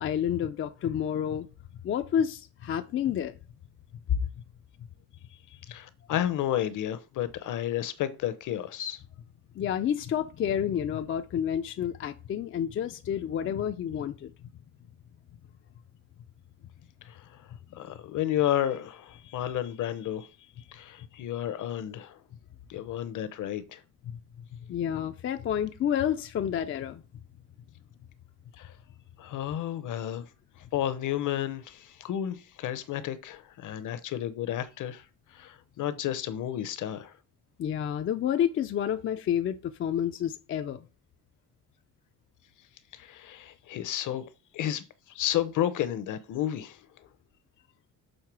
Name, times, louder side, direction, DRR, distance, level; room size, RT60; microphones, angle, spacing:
voice 1, 0.0-1.5 1.8-3.4 4.1-4.2 9.6-14.3 24.5-27.0 37.6-40.9, left 9 dB, 40° left, 0.4 m, -29 dB
voice 2, 5.7-9.0 17.1-17.4 17.7-20.3 20.7-22.2 22.7-23.8 28.6-28.7 29.2-30.3 30.7-35.0 35.3-37.1 42.9-44.2 44.5-47.1, left 11 dB, 60° left, 0.8 m, -32 dB
6.6 x 3.7 x 6.0 m
cardioid pair, 180°, 34 cm